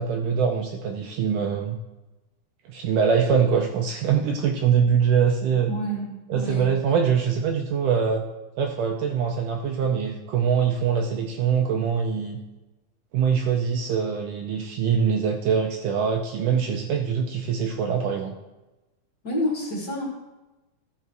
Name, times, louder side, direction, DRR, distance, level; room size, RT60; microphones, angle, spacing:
voice 1, 0.0-1.8 2.7-5.7 6.3-8.2 8.6-12.4 13.1-18.4, right 7 dB, 85° right, 3 dB, 1.9 m, -23 dB
voice 2, 5.7-6.1 6.3-6.7 19.2-20.0, equal, 35° left, -3 dB, 1.9 m, -28 dB
14.0 x 5.5 x 4.5 m, 1.1 s
omnidirectional pair, 4.3 m